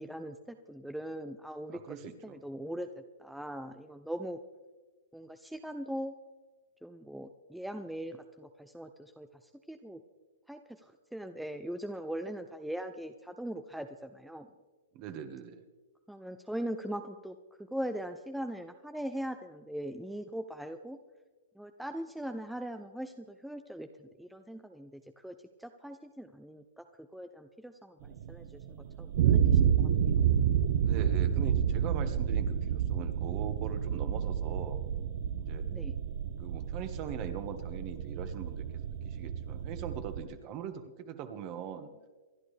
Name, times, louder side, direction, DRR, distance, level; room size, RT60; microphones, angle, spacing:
voice 1, 0.0-2.0 2.2-4.4 5.1-6.1 6.8-10.0 10.5-14.5 16.1-21.0 21.6-29.9 35.7-35.9, equal, ahead, 7 dB, 0.6 m, -41 dB
voice 2, 1.7-2.4 14.9-15.6 30.8-34.8 35.4-35.7 36.4-41.9, right 8 dB, 35° right, 8 dB, 1.6 m, -41 dB
sound 1, 28.1-40.2, right 8 dB, 60° right, 1.0 m, -29 dB
26.5 x 11.0 x 3.4 m, 1.3 s
hypercardioid pair, 135°, 0 cm